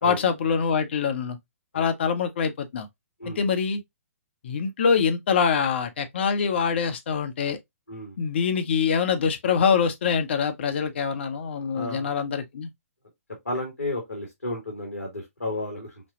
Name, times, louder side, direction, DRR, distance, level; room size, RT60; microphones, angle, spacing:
voice 1, 0.0-1.4 1.7-2.9 3.3-3.8 4.4-7.6 8.2-12.7, left 6 dB, 50° left, 0.9 m, -24 dB
voice 2, 11.7-12.1 13.5-16.0, left 2 dB, 85° left, 1.8 m, -32 dB
5.2 x 2.2 x 2.9 m
figure-of-eight pair, 125°, 8 cm